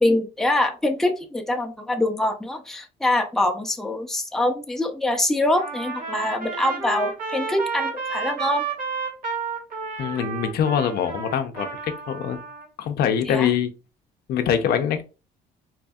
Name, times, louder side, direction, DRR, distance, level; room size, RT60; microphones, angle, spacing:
voice 1, 0.0-8.6 13.3-13.5, left 1 dB, ahead, 0.6 m, -24 dB
Trumpet, 5.6-12.7, right 5 dB, 55° right, 1.2 m, -31 dB
voice 2, 10.0-12.4 12.8-13.7 14.3-15.0, left 8 dB, 70° left, 0.6 m, -24 dB
4.1 x 2.6 x 2.3 m
cardioid pair, 110°, 17 cm